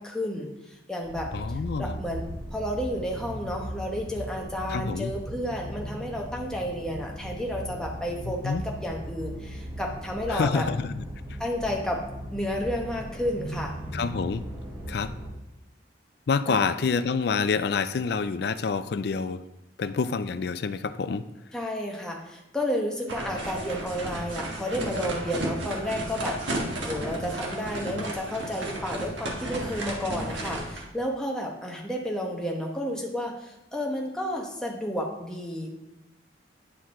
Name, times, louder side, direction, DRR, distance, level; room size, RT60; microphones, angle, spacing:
voice 1, 0.0-1.3 1.8-10.7 11.4-12.0 12.3-13.7 16.5-16.7 21.5-35.7, equal, 5° left, -1 dB, 1.0 m, -31 dB
sound 1, 1.0-15.3, equal, 25° right, 2.5 m, -38 dB
voice 2, 1.3-2.0 4.7-5.1 8.4-8.6 10.3-11.4 13.9-14.4 14.9-15.1 16.3-19.4 19.8-21.2, left 5 dB, 60° left, 13 dB, 0.4 m, -27 dB
sound 2, 23.1-30.9, right 1 dB, 80° right, 1.5 m, -33 dB
9.6 x 4.6 x 3.7 m, 0.88 s
head